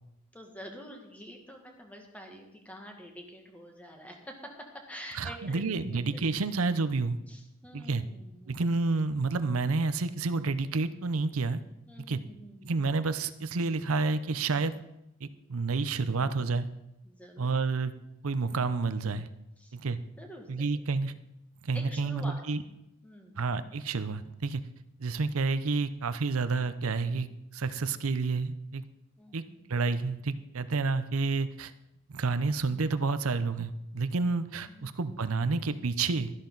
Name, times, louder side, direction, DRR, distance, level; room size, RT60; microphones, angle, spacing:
voice 1, 0.3-6.2 7.3-8.6 11.9-12.7 17.0-17.5 19.6-19.8 20.2-20.8 21.7-22.4 23.0-23.4 29.2-29.7 34.7-34.9, equal, 5° left, 2 dB, 1.8 m, -47 dB
voice 2, 5.1-7.2 7.7-8.0 8.5-11.6 12.1-12.2 12.6-14.8 15.2-16.7 17.4-17.9 18.2-19.3 19.7-20.0 20.5-21.1 21.6-22.6 23.4-24.6 25.0-27.3 27.5-28.8 29.3-31.7 32.1-36.3, right 4 dB, 85° right, 13 dB, 0.7 m, -29 dB
13.0 x 11.5 x 4.0 m, 0.88 s
head